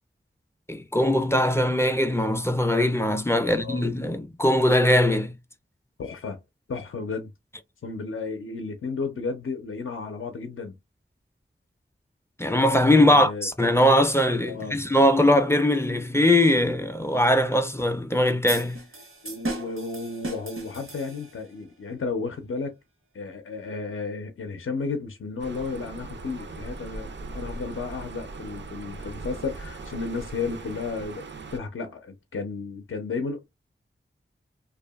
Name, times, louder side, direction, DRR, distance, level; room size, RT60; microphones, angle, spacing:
voice 1, 0.7-5.3 12.4-18.8, left 1 dB, 10° left, 0.4 m, -21 dB
voice 2, 3.4-3.9 6.0-6.4 6.7-7.3 7.8-10.8 13.1-13.5 14.4-14.8 19.2-22.8 23.1-33.4, left 4 dB, 75° left, 0.5 m, -33 dB
sound 1, 18.5-21.5, right 1 dB, 75° right, 0.9 m, -36 dB
sound 2, 25.4-31.6, right 3 dB, 60° right, 0.4 m, -39 dB
2.7 x 2.3 x 2.2 m
wide cardioid pair, 45°, 21 cm